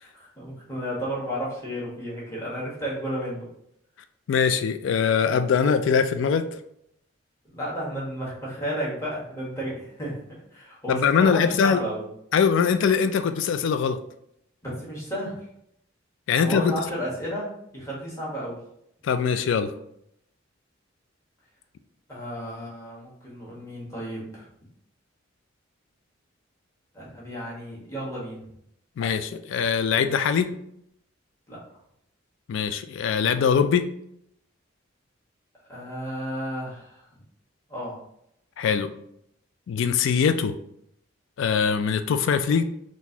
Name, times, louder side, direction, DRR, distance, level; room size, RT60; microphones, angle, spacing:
voice 1, 0.0-3.4 7.5-10.2 10.5-12.0 14.6-15.4 16.4-18.6 22.1-24.5 26.9-28.4 31.5-31.6 35.7-37.1 37.7-38.0, equal, 15° left, -6 dB, 1.2 m, -32 dB
voice 2, 4.3-6.5 10.9-11.8 12.3-14.0 16.3-16.8 19.0-19.7 29.0-30.5 32.5-33.9 38.6-38.9 39.7-40.5 41.4-42.6, left 6 dB, 65° left, 10 dB, 0.3 m, -22 dB
3.8 x 2.5 x 2.8 m, 0.76 s
head